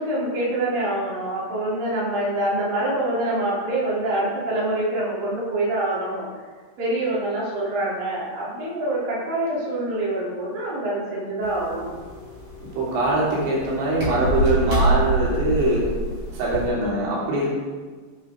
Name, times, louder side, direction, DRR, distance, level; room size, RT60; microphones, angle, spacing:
voice 1, 0.0-6.3 6.8-11.9, right 1 dB, 55° right, -7 dB, 5.2 m, -25 dB
sound 1, 11.4-16.7, right 1 dB, 25° right, 3.3 m, -26 dB
voice 2, 12.8-15.9 16.3-17.5, right 1 dB, 90° right, -6 dB, 5.3 m, -22 dB
16.5 x 8.3 x 3.9 m, 1.4 s
omnidirectional pair, 5.0 m